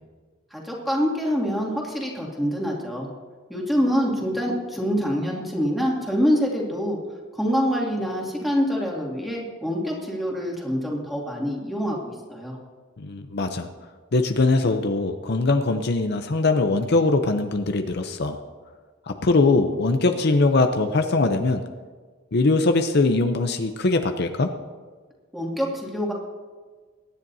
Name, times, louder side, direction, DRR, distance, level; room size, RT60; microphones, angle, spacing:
voice 1, 0.5-3.1 3.5-7.0 7.3-12.6 25.3-26.1, equal, ahead, -3 dB, 2.4 m, -25 dB
voice 2, 13.0-13.7 14.1-18.4 19.1-21.6 22.3-24.5, left 3 dB, 55° left, 6 dB, 0.7 m, -21 dB
23.0 x 10.5 x 2.8 m, 1.5 s
head